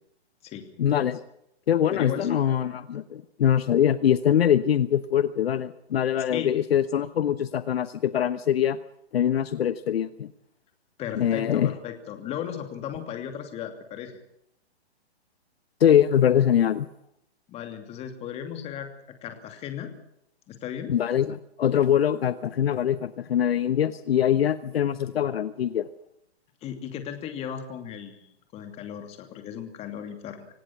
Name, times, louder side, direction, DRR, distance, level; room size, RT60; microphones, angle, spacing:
voice 1, 0.8-1.2 1.7-8.8 9.1-10.3 11.2-11.7 15.8-16.9 20.9-25.9, left 10 dB, 65° left, 14 dB, 1.1 m, -23 dB
voice 2, 1.9-2.5 6.3-6.5 11.0-14.2 17.5-18.9 19.2-19.9 20.5-21.0 26.6-30.5, left 9 dB, 20° left, 7 dB, 2.8 m, -36 dB
25.5 x 17.5 x 6.1 m, 0.77 s
hypercardioid pair, 155°, 33 cm